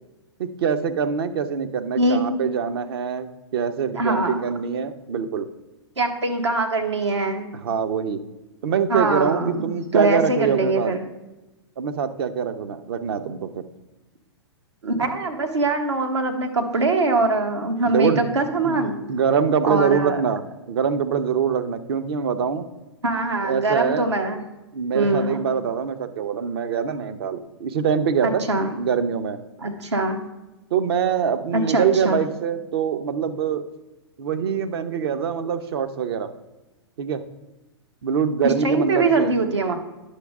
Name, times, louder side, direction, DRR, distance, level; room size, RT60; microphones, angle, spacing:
voice 1, 0.4-3.3 3.5-5.5 7.5-8.2 8.6-10.9 11.8-13.6 17.8-18.3 18.6-18.8 19.1-20.4 20.7-22.7 23.4-24.1 24.7-28.4 28.7-29.4 30.7-33.6 34.2-36.3 37.0-37.2 38.0-39.3, right 7 dB, 60° right, 9 dB, 0.8 m, -24 dB
voice 2, 2.0-2.3 3.9-4.4 6.0-7.5 8.9-11.0 14.8-19.0 19.6-20.2 23.0-24.4 24.9-25.4 28.2-28.7 29.6-30.2 31.5-32.2 38.4-39.8, right 2 dB, 80° right, 4 dB, 1.2 m, -23 dB
9.8 x 6.4 x 3.5 m, 1.0 s
hypercardioid pair, 110°, 14 cm